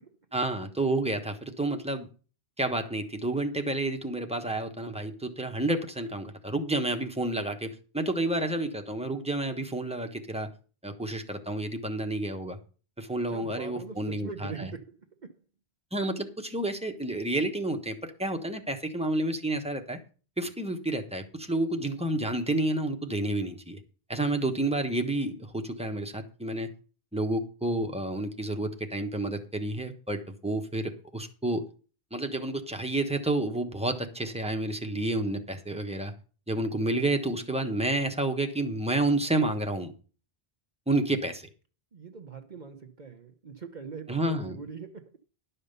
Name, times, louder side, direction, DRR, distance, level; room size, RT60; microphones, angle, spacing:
voice 1, 0.3-2.1 2.6-10.5 10.8-12.6 13.0-14.7 15.9-20.0 20.4-23.8 24.1-26.7 27.1-31.6 32.1-36.1 36.5-39.9 40.9-41.5 44.1-44.6, right 2 dB, 5° right, 1.1 m, -30 dB
voice 2, 13.3-15.4 24.1-24.5 41.9-45.2, right 5 dB, 50° right, 1.0 m, -42 dB
11.5 x 5.6 x 6.7 m
omnidirectional pair, 1.0 m